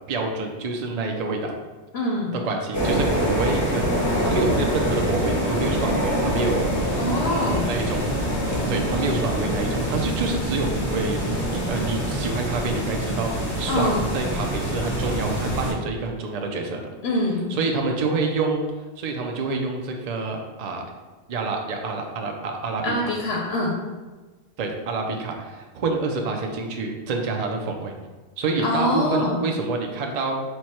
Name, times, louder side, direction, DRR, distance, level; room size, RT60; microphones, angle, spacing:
voice 1, 0.1-1.5 2.3-7.0 7.2-8.2 8.7-16.8 17.5-18.6 19.0-20.8 21.3-23.1 24.6-27.9 28.4-30.4, right 3 dB, 50° right, 2 dB, 0.5 m, -27 dB
voice 2, 1.9-2.3 7.0-7.7 13.7-14.0 17.0-17.5 22.8-23.7 28.6-29.4, left 1 dB, 70° left, -1 dB, 0.8 m, -24 dB
sound 1, 2.7-15.7, equal, 15° left, 0.8 m, -25 dB
4.6 x 2.2 x 4.2 m, 1.3 s
omnidirectional pair, 1.2 m